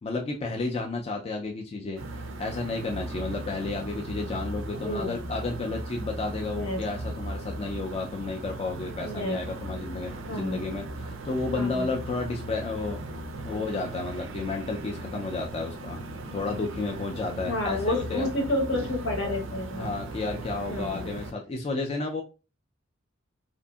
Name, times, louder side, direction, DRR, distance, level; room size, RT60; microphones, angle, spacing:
voice 1, 0.0-13.0 13.4-16.0 16.3-18.3 19.8-22.2, left 3 dB, 30° left, 1 dB, 0.3 m, -32 dB
sound 1, 2.0-21.3, right 2 dB, 75° right, 0.4 m, -37 dB
voice 2, 4.7-5.1 6.5-6.8 9.0-9.4 10.3-10.6 11.5-11.9 13.5-13.6 17.4-19.9 20.7-21.1, left 1 dB, 75° left, 3 dB, 0.9 m, -30 dB
2.6 x 2.5 x 2.2 m, 0.31 s
head